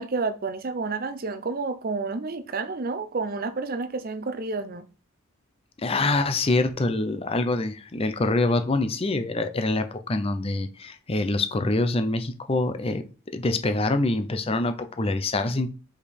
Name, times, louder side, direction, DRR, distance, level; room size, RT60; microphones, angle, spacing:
voice 1, 0.0-4.9, right 4 dB, 45° right, 0.6 m, -30 dB
voice 2, 5.8-13.0 13.3-15.7, left 2 dB, 30° left, 0.6 m, -25 dB
5.1 x 5.0 x 4.3 m
head